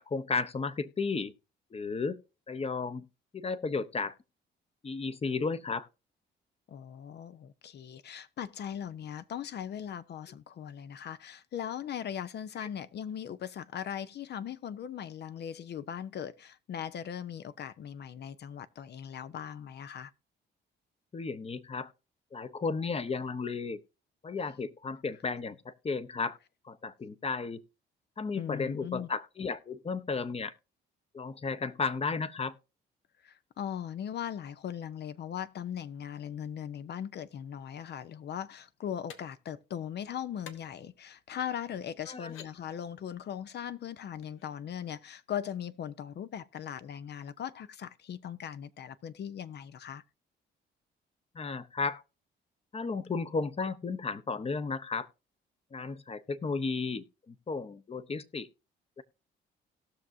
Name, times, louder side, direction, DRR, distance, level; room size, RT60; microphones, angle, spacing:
voice 1, 0.0-1.3 1.7-2.2 2.5-3.0 3.3-4.1 4.8-5.9 21.1-21.9 22.3-23.8 24.2-26.4 26.6-27.6 28.2-30.5 31.1-32.5 42.1-42.3 51.3-52.0 52.7-55.1 55.7-58.5 59.0-59.1, left 4 dB, 30° left, 0.9 m, -34 dB
voice 2, 6.7-20.1 28.3-29.1 33.2-50.0, left 9 dB, 60° left, 0.7 m, -39 dB
sound 1, 39.1-39.2 40.4-40.6 41.4-41.5 42.1-42.5 44.2-44.6, left 7 dB, 85° left, 1.1 m, -48 dB
18.0 x 6.2 x 2.7 m
cardioid pair, 90°, 20 cm